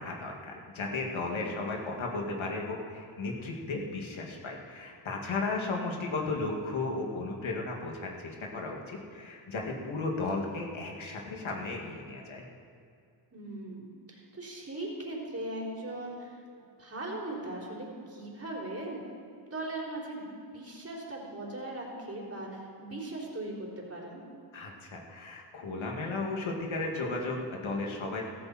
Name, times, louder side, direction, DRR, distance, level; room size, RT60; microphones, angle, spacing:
voice 1, 0.0-12.4 24.5-28.2, left 3 dB, 70° left, 0 dB, 2.6 m, -35 dB
voice 2, 1.4-1.9 5.7-6.0 10.4-10.5 13.3-16.4 16.8-19.0 19.5-20.2 20.5-24.2, right 1 dB, 30° right, -3 dB, 4.1 m, -39 dB
15.5 x 14.5 x 4.5 m, 2.4 s
cardioid pair, 75°, 50 cm